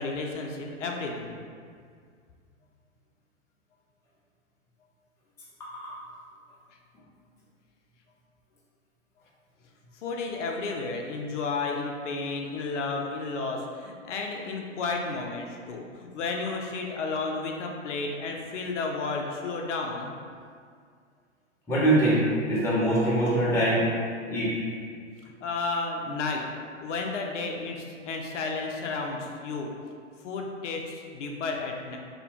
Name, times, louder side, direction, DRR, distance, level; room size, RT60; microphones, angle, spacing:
voice 1, 0.0-1.4 9.9-20.1 25.2-26.4 26.8-29.7 30.2-32.0, left 3 dB, 70° left, 1 dB, 0.5 m, -32 dB
voice 2, 5.6-6.0 21.7-22.2 22.5-23.9 24.3-24.6, right 1 dB, 5° left, -9 dB, 0.5 m, -23 dB
2.6 x 2.1 x 2.9 m, 2.1 s
hypercardioid pair, 110°, 38 cm